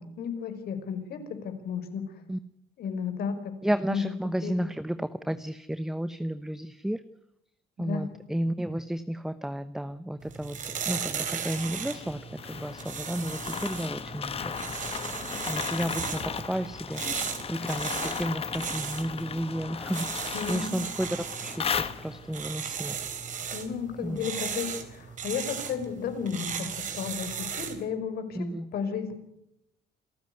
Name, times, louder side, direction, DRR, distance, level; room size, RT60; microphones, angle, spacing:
voice 1, 0.0-2.0 2.8-3.5 3.9-4.1 4.4-4.5 7.8-8.1 20.3-20.8 23.5-28.4 28.7-29.1, left 6 dB, 65° left, 8 dB, 5.2 m, -33 dB
voice 2, 3.6-7.0 7.8-12.2 12.5-14.5 15.5-17.0 17.5-23.0 24.0-24.3 28.3-28.7, right 1 dB, 5° right, 12 dB, 0.9 m, -32 dB
sound 1, 10.2-27.8, right 7 dB, 50° right, 4.0 m, -37 dB
sound 2, 11.4-22.4, left 6 dB, 35° left, 1.3 m, -36 dB
28.0 x 13.5 x 9.6 m, 0.81 s
cardioid pair, 110°, 17 cm